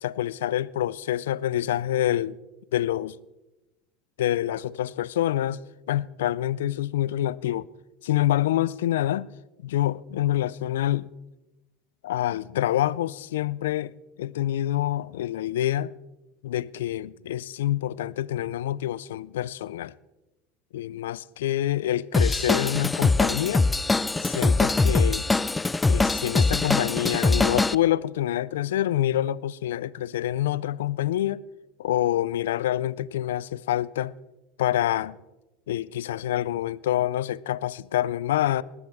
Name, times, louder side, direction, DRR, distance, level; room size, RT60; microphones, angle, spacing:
voice 1, 0.0-2.4 2.7-3.1 4.2-5.6 5.9-7.7 8.0-9.3 9.6-11.1 12.0-15.9 16.4-19.9 20.7-23.7 24.2-25.3 25.9-31.4 31.8-34.1 34.6-35.2 35.7-38.6, left 13 dB, 80° left, 0.4 m, -26 dB
Drum kit / Drum, 22.1-27.7, left 3 dB, 15° left, 0.4 m, -22 dB
19.5 x 15.0 x 3.6 m
hypercardioid pair, 90°, 0 cm